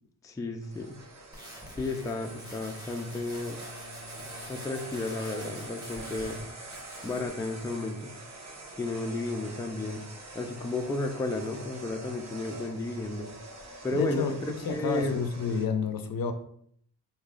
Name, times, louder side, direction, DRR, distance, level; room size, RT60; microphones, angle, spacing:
voice 1, 0.2-1.0 1.8-3.6 4.5-6.4 7.0-8.1 8.8-10.0 10.3-13.3 13.8-15.2, left 2 dB, 10° left, 4 dB, 0.3 m, -33 dB
sound 1, 0.6-15.7, right 2 dB, 45° right, 0.8 m, -45 dB
sound 2, 1.3-6.4 6.7-7.3, left 1 dB, 10° right, 1.2 m, -46 dB
voice 2, 13.9-16.3, left 5 dB, 60° left, 8 dB, 0.5 m, -30 dB
4.3 x 3.5 x 2.4 m, 0.64 s
wide cardioid pair, 95°, 40 cm